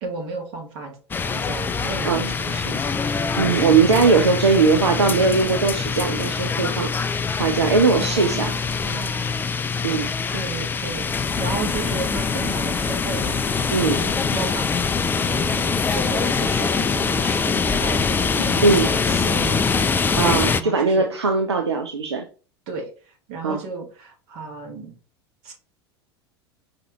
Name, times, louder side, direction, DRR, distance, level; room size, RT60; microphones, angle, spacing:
voice 1, 0.0-0.9 1.2-3.0 8.0-9.3 10.3-13.4 14.0-14.8 15.2-19.6 20.6-21.1 22.7-22.9 23.3-24.9 25.4-25.5, right 4 dB, 55° right, 2 dB, 1.5 m, -34 dB
sound 1, 1.1-20.6, left 5 dB, 15° left, 0.3 m, -24 dB
voice 2, 3.4-8.5 9.8-10.1 13.7-14.0 18.6-18.9 20.2-22.2 23.4-23.6, right 4 dB, 80° right, 4 dB, 0.5 m, -20 dB
5.1 x 2.8 x 3.0 m, 0.37 s
figure-of-eight pair, 75°, 14 cm